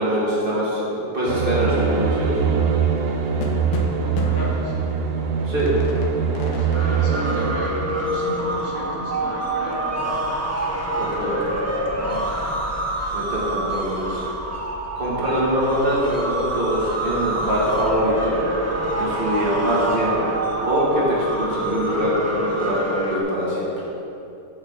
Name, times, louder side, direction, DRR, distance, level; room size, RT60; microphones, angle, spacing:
voice 1, 0.0-2.4 5.4-5.7 11.0-11.6 13.1-14.2 14.9-18.4 18.9-20.2 20.7-23.8, equal, 35° right, -7 dB, 1.6 m, -23 dB
sound 1, 1.3-7.5, right 6 dB, 65° right, 1.0 m, -22 dB
sound 2, 2.8-9.3 9.7-9.8 10.1-11.6, left 3 dB, 80° left, 1.3 m, -37 dB
voice 2, 4.0-4.9 6.4-10.2 11.9-12.3, equal, 60° left, -4 dB, 1.6 m, -35 dB
sound 3, 6.7-23.2, right 1 dB, 15° right, 0.5 m, -26 dB
6.4 x 4.2 x 6.0 m, 2.7 s
omnidirectional pair, 1.6 m